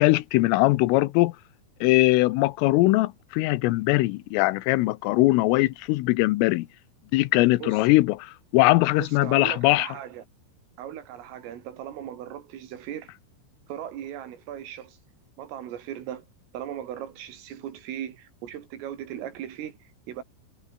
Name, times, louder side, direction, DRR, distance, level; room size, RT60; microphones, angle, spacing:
voice 1, 0.0-1.3 1.8-6.7 7.1-9.9, left 20 dB, 90° left, 3.5 m, -21 dB
voice 2, 9.0-10.3 10.8-13.1 13.7-15.0 15.4-16.3 16.5-20.2, right 10 dB, 90° right, 5.4 m, -38 dB
omnidirectional pair, 5.7 m